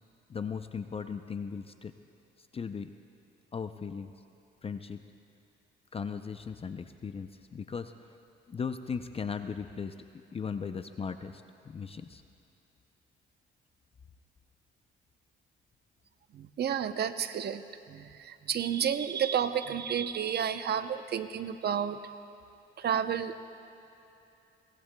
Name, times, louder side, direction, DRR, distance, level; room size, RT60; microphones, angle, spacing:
voice 1, 0.3-1.9 2.4-2.9 3.5-4.1 4.6-5.0 5.9-8.2 8.5-9.9 10.3-12.2, left 6 dB, 30° left, 9 dB, 0.5 m, -37 dB
voice 2, 16.3-17.6 17.9-22.0 22.8-23.5, right 8 dB, 55° right, 10 dB, 0.7 m, -31 dB
22.5 x 19.5 x 2.2 m, 2.8 s
cardioid pair, 90°, 20 cm